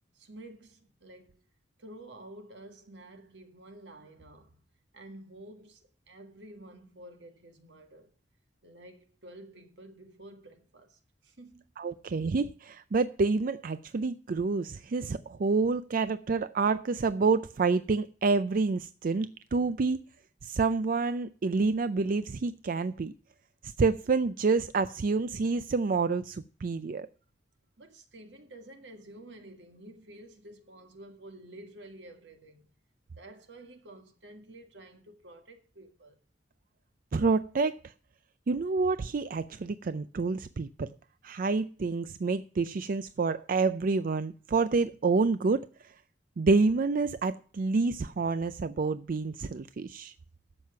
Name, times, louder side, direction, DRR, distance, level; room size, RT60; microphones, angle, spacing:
voice 1, 0.1-1.4 1.8-4.6 4.9-8.1 8.6-11.7 27.8-32.7 33.1-36.2, right 1 dB, 75° right, 1.9 m, -50 dB
voice 2, 11.8-20.0 20.4-23.1 23.6-27.1 37.1-37.9 38.5-40.9 41.2-45.9 46.4-50.1, right 4 dB, 50° right, 0.4 m, -28 dB
12.0 x 7.5 x 5.7 m
head